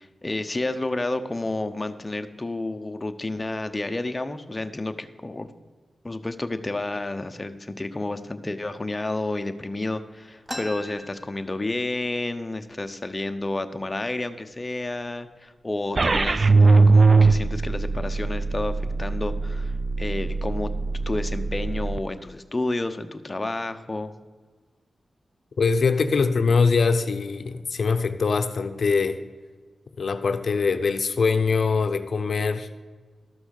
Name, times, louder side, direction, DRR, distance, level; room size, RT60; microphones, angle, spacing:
voice 1, 0.0-5.5 6.0-20.7 21.1-24.1, left 2 dB, 25° left, 8 dB, 0.8 m, -30 dB
sound 1, 10.5-12.1 12.4-12.5 12.8-13.4 14.0-14.1 14.8-15.0 15.5-15.9, left 1 dB, ahead, 1.3 m, -39 dB
sound 2, 16.0-22.0, right 3 dB, 40° right, 0.3 m, -21 dB
voice 2, 25.6-29.2 30.0-32.7, left 4 dB, 65° left, 10 dB, 0.7 m, -23 dB
13.0 x 6.1 x 6.5 m, 1.4 s
wide cardioid pair, 85°, 0 cm